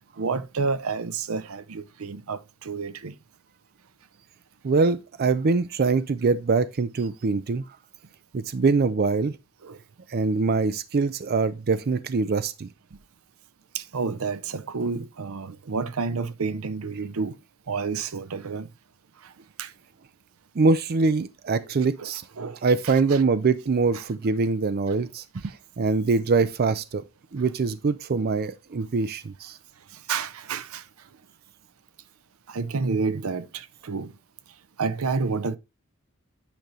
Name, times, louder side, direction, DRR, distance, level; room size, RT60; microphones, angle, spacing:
voice 1, 0.2-3.1 9.6-9.8 13.7-17.3 17.7-18.7 19.6-19.7 22.0-22.1 22.4-22.6 22.8-23.2 23.9-24.0 30.1-30.8 32.5-34.1 34.8-35.6, right 4 dB, 90° right, 0.6 m, -29 dB
voice 2, 4.6-7.6 8.3-9.4 10.1-12.7 20.6-22.2 22.6-27.0 27.3-29.6, right 4 dB, 45° right, 0.5 m, -23 dB
9.0 x 5.2 x 3.1 m
head